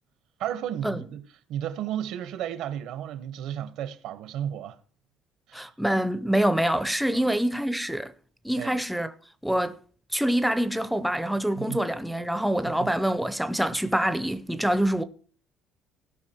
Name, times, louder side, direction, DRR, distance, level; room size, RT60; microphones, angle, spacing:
voice 1, 0.4-4.8 5.5-5.7 7.1-7.4 8.5-8.8 11.6-11.9 12.6-13.0, right 10 dB, 65° right, 1.1 m, -34 dB
voice 2, 5.5-8.1 8.4-9.1 9.4-9.8 10.1-15.0, right 1 dB, ahead, 0.6 m, -25 dB
17.0 x 5.9 x 4.4 m
cardioid pair, 170°, 0 cm